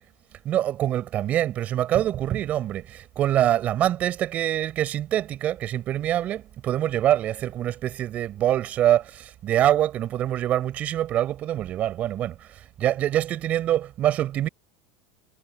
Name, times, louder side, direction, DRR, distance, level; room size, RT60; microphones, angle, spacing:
voice 1, 0.4-14.5, right 12 dB, 45° right, 4.3 m, -25 dB
hypercardioid pair, 100°, 4 cm